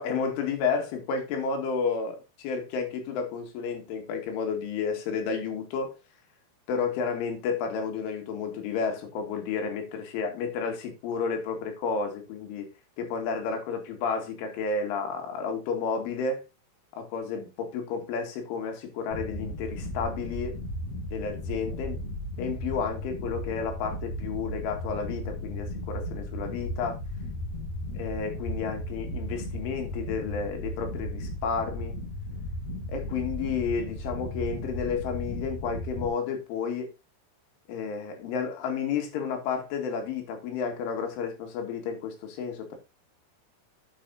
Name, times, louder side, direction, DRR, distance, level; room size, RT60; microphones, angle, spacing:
voice 1, 0.0-6.0 6.7-16.4 16.9-20.6 21.1-22.0 22.4-27.0 27.9-32.0 32.9-36.9 37.7-42.8, left 5 dB, 75° left, 4.5 m, -31 dB
sound 1, 19.1-36.1, left 1 dB, 55° left, 1.8 m, -35 dB
10.5 x 9.1 x 2.7 m
omnidirectional pair, 5.8 m